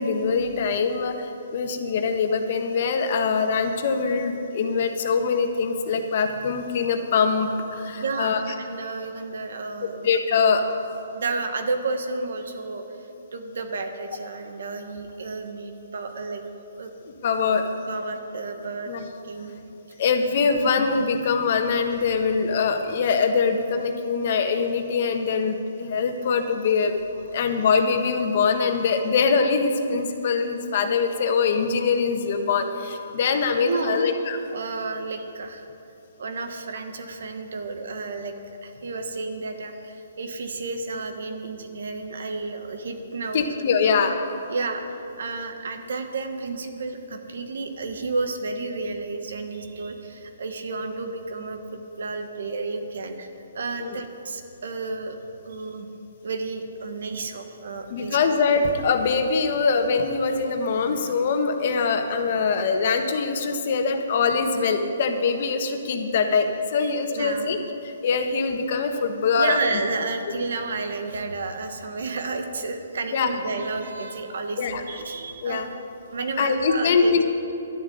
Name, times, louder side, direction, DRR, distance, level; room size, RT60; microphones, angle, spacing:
voice 1, 0.0-8.4 9.8-10.6 17.2-17.7 18.9-19.1 20.0-26.9 27.3-34.4 43.3-44.2 53.8-53.9 57.9-67.6 67.8-69.6 73.1-73.3 74.6-74.8 75.4-75.7 76.4-77.2, left 5 dB, 50° left, 5 dB, 1.4 m, -23 dB
voice 2, 8.0-10.0 11.1-12.8 13.3-16.4 16.8-16.9 17.9-18.9 19.2-19.5 20.4-20.5 33.6-34.1 34.5-35.7 36.2-38.3 38.6-43.5 43.8-43.9 44.5-53.3 53.5-55.2 55.4-55.9 56.2-58.2 66.8-67.5 69.4-75.8 76.1-77.2, right 3 dB, 70° right, 6 dB, 1.6 m, -31 dB
12.0 x 7.6 x 9.5 m, 2.9 s
hypercardioid pair, 150°, 0 cm